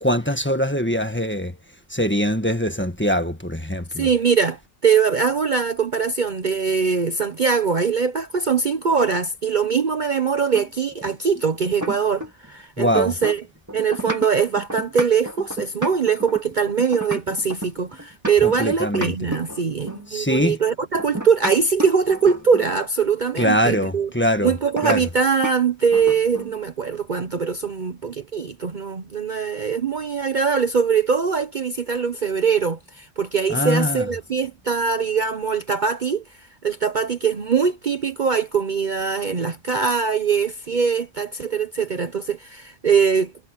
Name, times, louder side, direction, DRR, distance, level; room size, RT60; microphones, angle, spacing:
voice 1, 0.0-1.5 1.9-4.1 12.8-13.1 18.4-19.1 20.1-20.6 23.4-24.5 24.8-25.0 33.5-34.0, equal, 10° left, 1.5 m, -22 dB
voice 2, 4.0-13.5 13.7-24.1 24.4-36.2 36.6-43.3, right 6 dB, 45° right, 0.9 m, -22 dB
sound 1, 10.5-12.5 12.8-18.6 18.9-20.1 21.0-22.8 24.8-25.0 25.4-25.6 25.9-26.6, right 1 dB, 15° right, 2.5 m, -32 dB
omnidirectional pair, 1.2 m